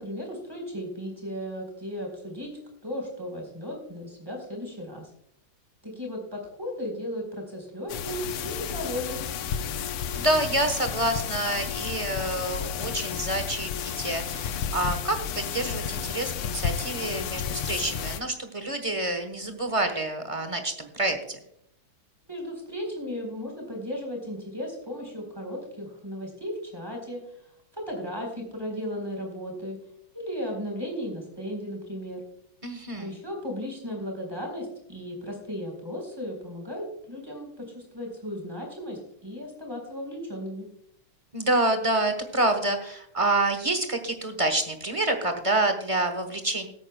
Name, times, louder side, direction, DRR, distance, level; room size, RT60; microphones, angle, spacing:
voice 1, 0.0-2.5 2.8-5.1 5.8-9.3 22.2-27.2 27.7-29.8 30.1-32.2 33.0-37.5 37.7-40.7, equal, 10° right, 0 dB, 3.9 m, -35 dB
sound 1, 7.9-18.2, left 8 dB, 85° left, 1.7 m, -32 dB
voice 2, 10.1-21.4 32.6-33.2 41.3-46.7, right 2 dB, 30° right, 7 dB, 0.6 m, -27 dB
20.0 x 9.0 x 2.2 m, 0.71 s
omnidirectional pair, 2.3 m